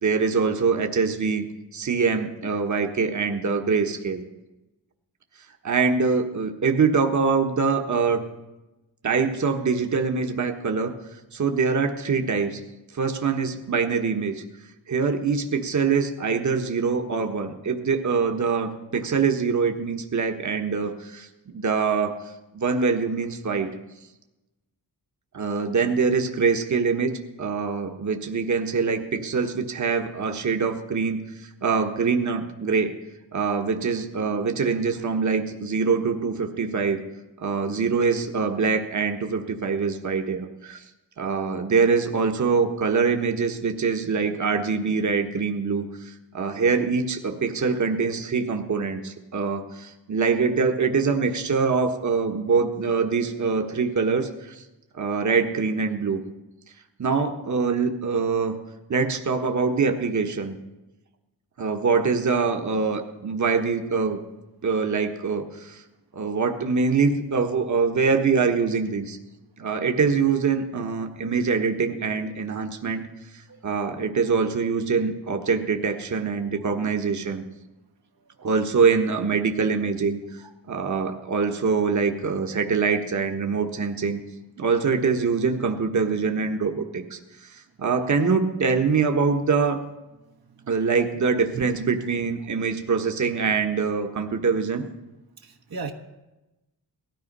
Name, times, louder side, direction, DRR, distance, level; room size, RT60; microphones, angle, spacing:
voice 1, 0.0-1.4 1.7-4.2 5.6-8.3 9.0-10.9 11.3-12.6 12.9-14.4 14.9-22.1 22.5-23.7 25.3-32.9 33.3-37.0 37.4-40.8 41.2-54.6 54.9-56.2 57.0-58.6 58.9-60.6 61.6-64.2 64.6-65.8 66.1-69.2 69.6-73.1 73.6-77.4 78.4-80.2 80.7-84.2 84.6-89.8 90.7-94.8, right 5 dB, 45° right, 5 dB, 1.4 m, -24 dB
voice 2, 95.4-95.9, right 4 dB, 65° right, 3 dB, 1.4 m, -35 dB
18.0 x 13.5 x 5.4 m, 1.0 s
cardioid pair, 85°, 39 cm